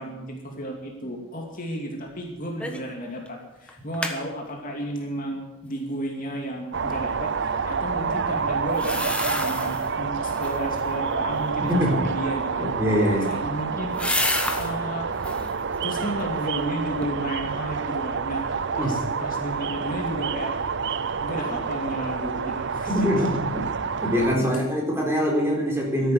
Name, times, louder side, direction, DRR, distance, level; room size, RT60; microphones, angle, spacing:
voice 1, 0.0-12.7 13.3-13.9 14.6-15.1 15.8-20.5 21.2-23.4 24.2-24.5 26.0-26.1, right 1 dB, 40° left, 1 dB, 2.5 m, -33 dB
sound 1, 2.6-2.9 3.3-3.4 3.7-4.2 8.7-9.9 10.3-10.8 12.8-14.7 15.1-15.5 16.0-16.7 17.0-17.1, left 1 dB, 5° left, 1.3 m, -30 dB
sound 2, 6.7-24.4, right 5 dB, 55° right, 0.6 m, -28 dB
voice 2, 12.6-13.3 18.8-18.9 22.9-23.4 24.0-26.1, equal, 10° right, -1 dB, 4.1 m, -23 dB
13.5 x 11.0 x 8.4 m, 0.93 s
head